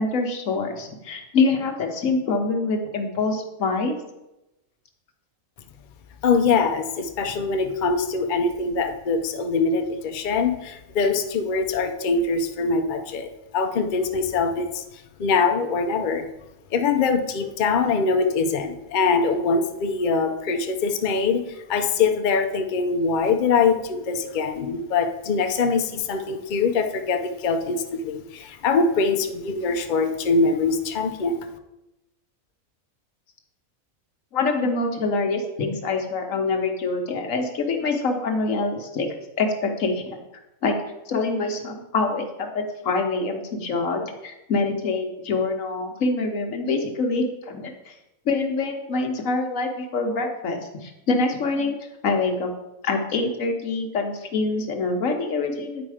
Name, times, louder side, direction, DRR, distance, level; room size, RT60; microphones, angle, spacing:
voice 1, 0.0-4.0 34.3-39.1 39.4-40.0 40.6-40.8 41.1-47.9 48.2-51.8 52.0-52.5 52.8-55.8, left 3 dB, 70° left, 4 dB, 1.4 m, -25 dB
voice 2, 6.2-14.8 15.2-16.3 16.7-31.4, left 4 dB, 50° left, 6 dB, 0.6 m, -23 dB
9.2 x 4.3 x 4.9 m, 0.94 s
omnidirectional pair, 1.4 m